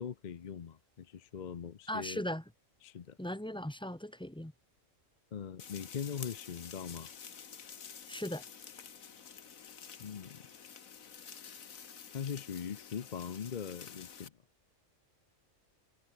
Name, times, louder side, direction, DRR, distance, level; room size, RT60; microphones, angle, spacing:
voice 1, 0.0-2.2 2.8-3.2 5.3-7.1 10.0-10.4 12.1-14.3, left 7 dB, 45° left, 0.7 m, -41 dB
voice 2, 1.9-2.4 3.2-4.5 8.1-8.4, left 1 dB, 5° left, 0.7 m, -38 dB
sound 1, 5.6-14.3, left 7 dB, 85° left, 1.9 m, -50 dB
omnidirectional pair, 1.4 m